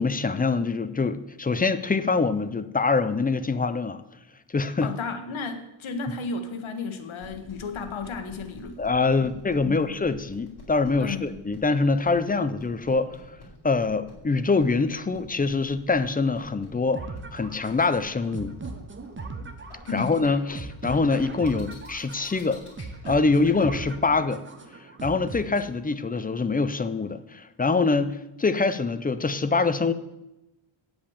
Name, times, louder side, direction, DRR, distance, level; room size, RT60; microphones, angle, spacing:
voice 1, 0.0-4.0 4.5-4.9 8.8-13.4 13.6-17.0 17.3-18.6 19.9-22.6 23.0-24.4 25.0-29.9, left 4 dB, 20° left, 12 dB, 0.4 m, -24 dB
voice 2, 4.8-8.8 9.2-9.8 11.0-11.2 19.9-20.1, left 4 dB, 75° left, 8 dB, 1.4 m, -33 dB
sound 1, 7.2-23.8, left 4 dB, 50° left, 4.3 m, -48 dB
sound 2, 16.9-25.9, right 3 dB, 25° right, 0.8 m, -39 dB
8.6 x 7.8 x 7.1 m, 0.93 s
wide cardioid pair, 165°, 49 cm